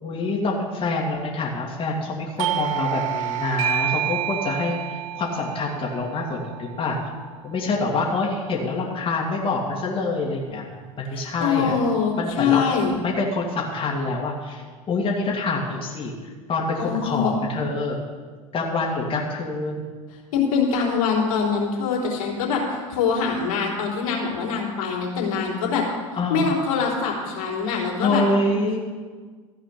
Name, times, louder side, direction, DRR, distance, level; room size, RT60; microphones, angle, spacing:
voice 1, 0.0-7.0 7.4-11.8 12.2-12.8 13.0-16.1 16.5-18.0 18.5-19.8 26.2-26.5 28.0-28.8, left 3 dB, 30° left, -3 dB, 2.2 m, -26 dB
Doorbell, 2.4-7.7, right 12 dB, 75° right, 0.6 m, -29 dB
voice 2, 11.1-12.9 16.8-17.4 20.3-25.9 26.3-28.2, left 6 dB, 75° left, -3 dB, 3.4 m, -24 dB
14.5 x 5.0 x 8.9 m, 1.5 s
hypercardioid pair, 90°, 18 cm